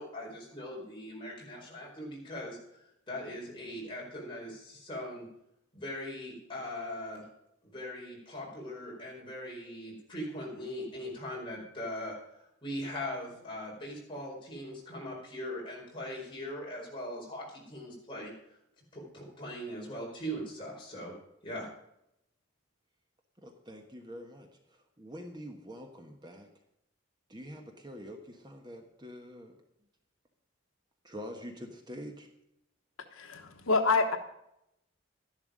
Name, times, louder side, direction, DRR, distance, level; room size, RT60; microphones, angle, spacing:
voice 1, 0.0-5.3 5.7-7.2 7.6-18.3 18.9-21.1 21.4-21.7, left 1 dB, 25° left, -3 dB, 4.9 m, -40 dB
voice 2, 23.4-26.5 27.3-29.6 31.0-32.3, equal, 20° right, 3 dB, 1.2 m, -46 dB
voice 3, 33.2-34.2, left 4 dB, 80° left, 5 dB, 1.2 m, -27 dB
12.5 x 11.0 x 5.1 m, 0.80 s
head